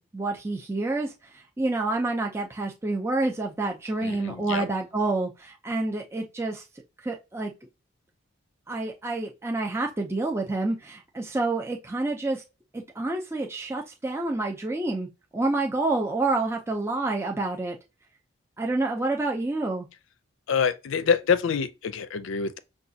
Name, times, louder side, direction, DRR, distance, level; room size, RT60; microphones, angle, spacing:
voice 1, 0.1-6.6 7.0-7.5 8.7-12.4 12.7-17.8 18.6-19.9, right 2 dB, 15° right, 0.4 m, -28 dB
voice 2, 4.0-4.7 20.5-22.6, left 6 dB, 85° left, 0.4 m, -26 dB
5.8 x 2.3 x 2.6 m
head